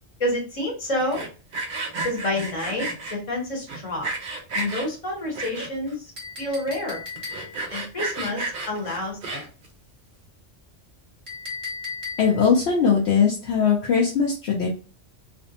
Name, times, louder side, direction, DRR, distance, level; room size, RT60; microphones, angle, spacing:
voice 1, 0.2-1.2 2.0-4.1 4.5-6.1 6.4-7.0 7.7-9.5, left 1 dB, 30° left, -1 dB, 0.9 m, -28 dB
Sawing, 1.0-3.2 3.7-4.9 5.3-5.9 6.4-6.5 6.7-6.8 7.2-9.7, right 2 dB, 55° right, 0.6 m, -32 dB
Chink clink, 6.2-7.7 11.3-12.5, left 4 dB, 30° right, 0.9 m, -36 dB
voice 2, 12.2-14.7, left 6 dB, 65° left, -2 dB, 0.8 m, -20 dB
2.5 x 2.1 x 2.6 m, 0.35 s
omnidirectional pair, 1.3 m